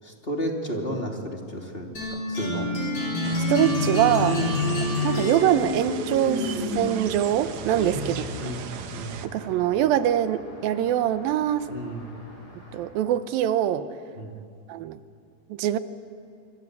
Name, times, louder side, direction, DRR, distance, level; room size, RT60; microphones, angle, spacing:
voice 1, 0.0-2.7 4.2-4.7 7.8-9.2 11.7-12.1 14.1-14.3, equal, 15° left, 1 dB, 2.9 m, -33 dB
sound 1, 2.0-7.1, left 2 dB, 55° left, 7.9 m, -27 dB
sound 2, 3.2-9.3, right 8 dB, 65° right, 2.1 m, -38 dB
voice 2, 3.5-4.3 5.0-8.5 9.2-11.7 12.7-13.9 14.7-15.0 15.5-15.8, right 11 dB, 90° right, 12 dB, 2.8 m, -24 dB
Traffic noise roadway noise, 7.5-12.9, left 2 dB, 35° left, 7.3 m, -44 dB
26.5 x 25.5 x 8.2 m, 2.5 s
omnidirectional pair, 4.0 m